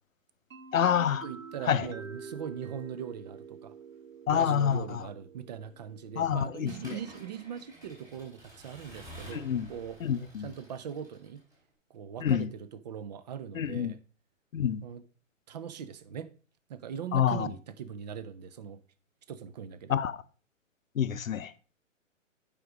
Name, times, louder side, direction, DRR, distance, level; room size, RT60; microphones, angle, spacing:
sound 1, 0.5-8.2, right 5 dB, 90° right, 0.8 m, -48 dB
voice 1, 0.7-1.3 1.7-1.9 4.3-5.1 6.2-7.0 9.3-9.7 10.0-10.5 12.2-12.5 13.5-14.0 14.5-14.8 17.1-17.5 19.9-20.2 20.9-21.5, left 8 dB, 85° left, 0.7 m, -27 dB
voice 2, 1.2-3.7 4.3-10.0 10.4-11.4 11.9-14.0 14.8-15.0 15.5-16.3 16.7-18.8 19.3-19.9, right 8 dB, 35° right, 0.5 m, -40 dB
Accelerating revving vroom / Mechanisms, 6.7-11.6, right 1 dB, 10° right, 3.0 m, -50 dB
7.6 x 5.2 x 4.7 m
hypercardioid pair, 135°, 39 cm